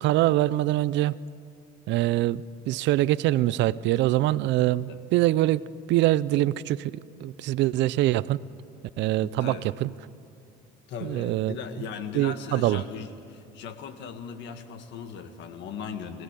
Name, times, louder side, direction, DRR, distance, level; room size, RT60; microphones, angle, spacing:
voice 1, 0.0-1.1 1.9-6.9 7.2-8.4 9.0-9.5 9.8-9.9 11.0-11.6 12.2-12.8, right 15 dB, 70° right, 19 dB, 0.5 m, -24 dB
voice 2, 9.2-9.7 10.9-16.2, left 6 dB, 70° left, 8 dB, 1.9 m, -38 dB
24.0 x 17.5 x 8.3 m, 2.5 s
cardioid pair, 110°, 19 cm